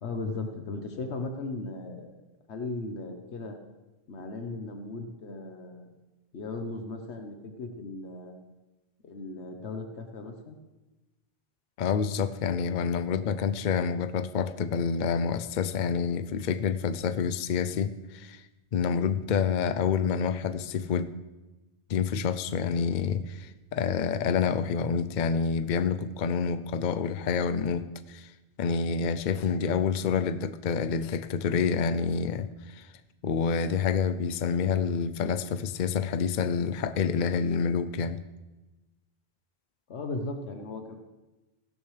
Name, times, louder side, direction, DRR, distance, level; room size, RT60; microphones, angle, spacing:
voice 1, 0.0-2.1 2.5-3.6 4.1-5.9 6.3-8.3 9.0-10.6 39.9-41.0, left 3 dB, 90° left, 5 dB, 1.3 m, -37 dB
voice 2, 11.8-18.4 18.7-21.1 21.9-28.3 28.6-32.9 33.2-38.2, left 6 dB, 55° left, 12 dB, 0.6 m, -28 dB
16.0 x 12.5 x 3.3 m, 1.1 s
omnidirectional pair, 1.1 m